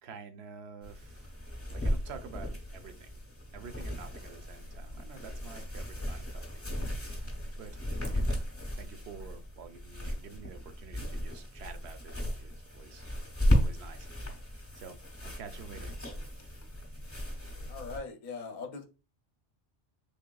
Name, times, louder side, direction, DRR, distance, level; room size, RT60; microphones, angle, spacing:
voice 1, 0.0-1.3 1.7-3.2 3.5-6.6 7.0-7.8 8.1-8.4 8.7-13.2 13.4-14.1 14.7-15.9 16.3-16.7, right 6 dB, 75° right, 0.8 m, -49 dB
sound 1, 0.8-18.0, equal, 15° left, 0.8 m, -35 dB
voice 2, 17.7-18.8, left 4 dB, 50° left, 0.7 m, -40 dB
3.4 x 3.4 x 2.2 m
omnidirectional pair, 1.1 m